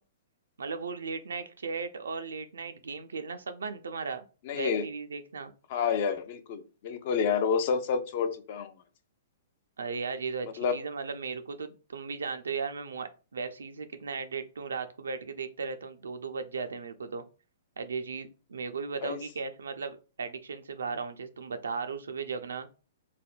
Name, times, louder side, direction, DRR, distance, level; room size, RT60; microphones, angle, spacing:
voice 1, 0.6-4.3 4.5-5.5 9.8-17.2 17.8-22.7, right 5 dB, 85° right, 8 dB, 0.4 m, -36 dB
voice 2, 4.5-4.8 5.7-8.7 10.6-10.7 19.0-19.2, left 6 dB, 50° left, 9 dB, 0.5 m, -29 dB
3.3 x 2.1 x 2.4 m, 0.34 s
hypercardioid pair, 125°, 0 cm